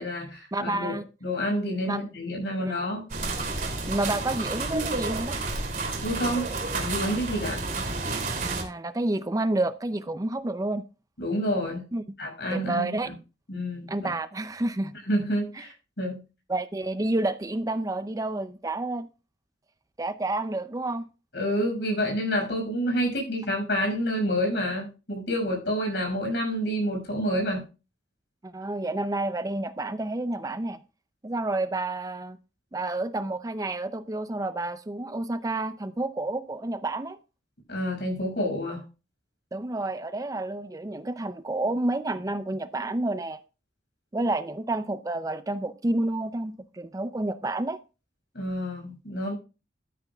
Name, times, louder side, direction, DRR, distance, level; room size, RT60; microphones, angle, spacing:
voice 1, 0.0-3.1 6.0-7.6 11.2-11.8 12.2-13.1 13.5-14.1 15.1-16.2 21.3-27.6 37.7-38.8 48.3-49.3, equal, 65° left, 6.1 m, -28 dB
voice 2, 0.5-1.1 1.8-2.0 2.6-2.7 3.9-5.4 8.5-10.8 11.9-12.0 12.5-13.1 13.9-14.9 15.6-15.7 16.5-19.1 20.0-21.0 28.4-30.8 31.2-32.4 32.7-37.2 39.5-43.4 44.1-47.8, right 2 dB, 20° right, 0.5 m, -29 dB
sound 1, 3.1-8.6, right 3 dB, 50° right, 2.9 m, -30 dB
13.0 x 9.7 x 2.3 m
head